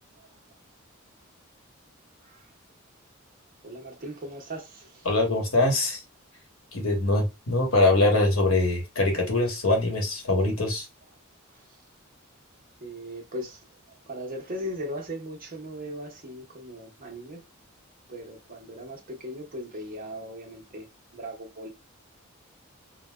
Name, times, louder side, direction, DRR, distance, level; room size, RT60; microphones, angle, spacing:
voice 1, 3.6-5.1 12.8-13.6 14.1-17.4 18.1-20.9 21.1-21.7, equal, 45° right, 0.9 m, -38 dB
voice 2, 5.0-6.0 6.7-10.8, left 2 dB, 90° left, 1.3 m, -23 dB
3.9 x 2.2 x 2.3 m
head